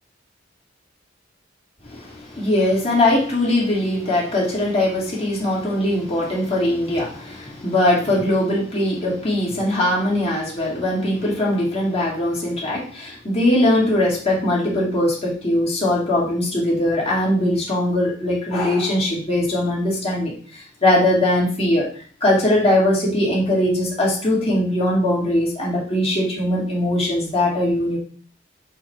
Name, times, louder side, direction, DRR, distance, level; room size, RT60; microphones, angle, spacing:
voice 1, 1.9-21.9 22.2-28.0, left 1 dB, 30° left, -5 dB, 2.5 m, -21 dB
7.6 x 3.5 x 4.6 m, 0.43 s
head